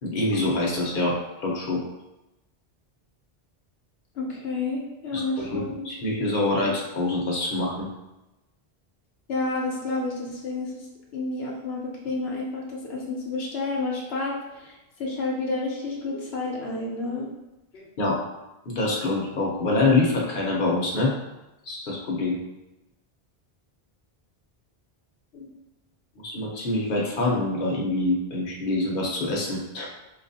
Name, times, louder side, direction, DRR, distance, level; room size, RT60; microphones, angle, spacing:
voice 1, 0.0-1.8 5.1-7.9 18.0-18.2 18.7-21.1 21.7-22.4 26.2-29.9, left 2 dB, 60° left, -3 dB, 0.9 m, -25 dB
voice 2, 4.1-5.9 9.3-10.7 11.1-17.3 17.7-17.8 25.3-25.5, left 3 dB, 85° left, -2 dB, 1.0 m, -30 dB
4.3 x 2.3 x 2.7 m, 0.99 s
omnidirectional pair, 1.1 m